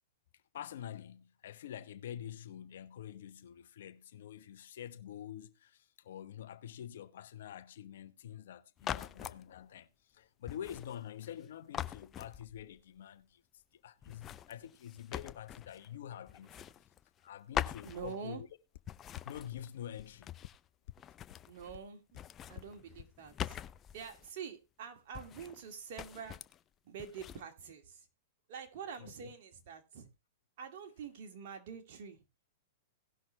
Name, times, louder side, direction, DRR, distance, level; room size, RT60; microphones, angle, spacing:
voice 1, 0.5-13.4 13.7-16.6 17.2-18.5 19.2-20.3 29.0-29.3, left 10 dB, 70° left, 1.1 m, -47 dB
sound 1, 8.8-9.4 10.5-11.4 11.7-12.8 14.0-15.9 16.3-17.3 17.5-18.5 18.9-20.7 21.0-21.8 22.1-24.3 25.1-25.7 26.0-26.6 27.0-27.4, left 10 dB, 25° left, 0.4 m, -43 dB
voice 2, 17.8-18.4 21.5-22.2 22.5-23.6 23.9-26.4 26.8-28.1 28.5-30.1 30.6-32.2, right 7 dB, 55° right, 2.3 m, -46 dB
sound 2, 18.7-18.8 19.2-19.3 19.6-19.7 20.0-20.1 20.4-20.5 20.9-21.0 21.3-21.4 21.7-21.8 22.1-22.2 22.6-22.7 23.0-23.1 23.4-23.5, left 16 dB, 55° left, 0.7 m, -48 dB
18.0 x 6.0 x 3.2 m
hypercardioid pair, 130°, 0 cm